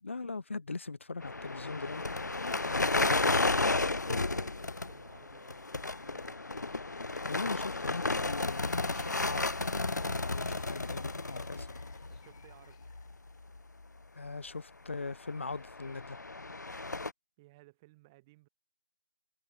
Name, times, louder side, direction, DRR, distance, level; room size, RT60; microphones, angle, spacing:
voice 1, 0.0-3.1 7.2-9.5 10.1-11.7 14.1-16.2, left 3 dB, 45° left, 1.0 m, -40 dB
sound 1, 1.2-12.5 12.8-13.2 13.5-13.6 15.3-17.1, left 3 dB, 85° left, 0.4 m, -33 dB
sound 2, 2.0-13.1, left 11 dB, 20° left, 4.3 m, -70 dB
voice 2, 4.2-6.4 12.1-12.8 17.4-18.5, right 22 dB, 10° right, 1.8 m, -60 dB
figure-of-eight pair, 160°, 9 cm